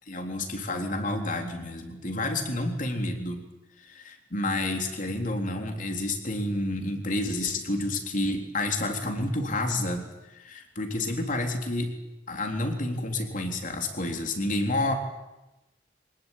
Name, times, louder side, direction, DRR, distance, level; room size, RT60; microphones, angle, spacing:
voice 1, 0.1-3.5 3.8-11.9 12.3-14.9, left 2 dB, 50° left, 4 dB, 3.8 m, -29 dB
24.5 x 20.0 x 9.2 m, 1.0 s
head